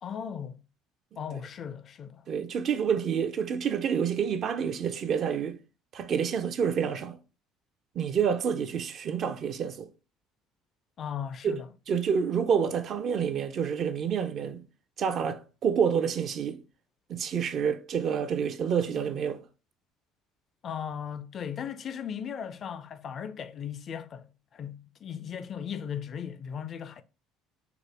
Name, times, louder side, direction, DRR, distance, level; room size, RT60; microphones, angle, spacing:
voice 1, 0.0-0.5 1.2-2.2 11.0-11.7 20.6-27.0, left 8 dB, 50° left, 0.4 m, -37 dB
voice 2, 2.3-5.6 5.9-7.2 8.0-9.9 11.4-11.6 11.9-14.6 15.0-16.6 17.1-19.4, right 7 dB, 50° right, 0.5 m, -28 dB
4.8 x 2.0 x 3.4 m
hypercardioid pair, 75°, 0 cm